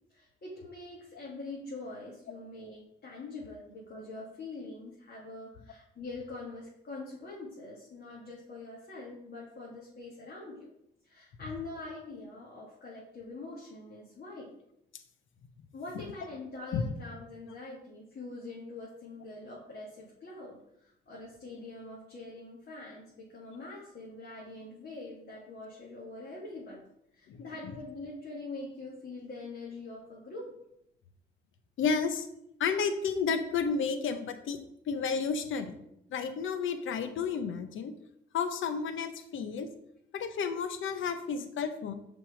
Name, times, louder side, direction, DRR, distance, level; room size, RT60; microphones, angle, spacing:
voice 1, 0.1-10.7 11.0-14.5 15.7-26.8 27.1-30.5, left 2 dB, 55° left, -5 dB, 1.7 m, -44 dB
voice 2, 31.8-32.3 32.6-34.6 34.9-35.8 36.1-37.9 38.3-39.7 40.1-41.9, left 5 dB, 80° left, 9 dB, 0.7 m, -31 dB
5.9 x 3.6 x 4.8 m, 0.77 s
cardioid pair, 65°, 20 cm